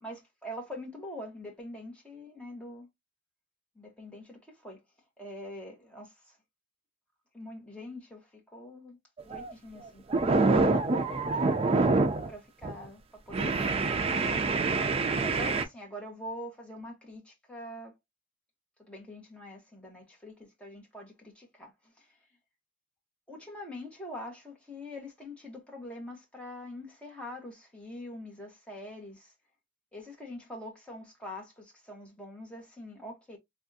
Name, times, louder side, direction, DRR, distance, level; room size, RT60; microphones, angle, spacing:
voice 1, 0.0-2.9 3.8-4.8 5.2-6.1 7.3-9.0 9.3-10.3 10.7-10.9 11.3-11.4 11.7-17.9 18.9-21.7 23.3-29.3 29.9-33.4, left 1 dB, 5° left, 1.0 m, -44 dB
sound 1, 9.2-9.5 9.8-12.3 12.6-12.9 13.3-15.6, right 3 dB, 30° right, 0.4 m, -26 dB
3.5 x 2.4 x 2.6 m
head